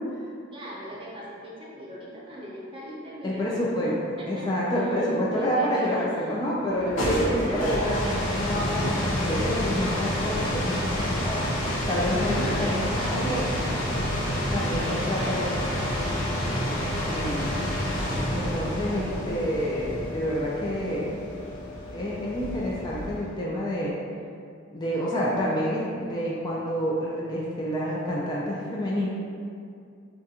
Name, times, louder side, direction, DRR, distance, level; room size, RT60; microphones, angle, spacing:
voice 1, 0.5-6.4 7.0-7.6 12.3-13.8 14.7-16.3, equal, 25° right, -5 dB, 0.5 m, -39 dB
voice 2, 3.2-3.9 4.3-11.4 11.9-13.5 14.5-15.5 17.1-17.5 18.3-21.3 21.9-23.9 24.7-29.1, equal, 20° left, -5 dB, 0.3 m, -28 dB
sound 1, 6.7-23.4, equal, 75° left, 0.6 m, -28 dB
3.6 x 2.4 x 2.7 m, 2.4 s
head